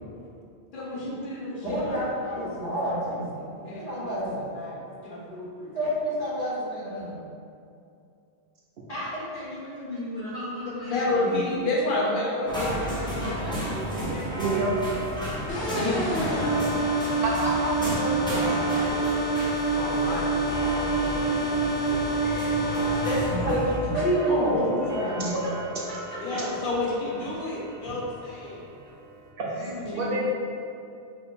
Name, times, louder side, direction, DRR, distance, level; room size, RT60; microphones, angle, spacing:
voice 1, 0.7-2.9 3.5-4.1 4.5-5.7 10.9-14.6 15.7-16.6 18.4-19.1 19.7-21.3 23.0-23.4 24.0-24.7 26.2-28.7 29.9-30.2, left 1 dB, 55° left, -4 dB, 0.7 m, -30 dB
voice 2, 1.6-3.3 3.8-4.5 5.7-7.1 8.9-11.4 23.3-23.6 23.8-25.3 26.5-26.6 29.6-30.2, equal, 35° left, -9 dB, 1.1 m, -31 dB
sound 1, 12.5-23.8, equal, 5° left, 0.5 m, -33 dB
Clock, 13.2-29.3, right 2 dB, 40° right, 0.9 m, -39 dB
voice 3, 14.4-14.7 17.2-18.7 25.3-25.4 26.3-26.4 29.4-29.7 30.0-30.2, right 2 dB, 65° right, -4 dB, 0.7 m, -29 dB
sound 2, 15.5-23.2, right 2 dB, 80° left, 1.0 m, -27 dB
2.7 x 2.5 x 4.2 m, 2.5 s
omnidirectional pair, 1.1 m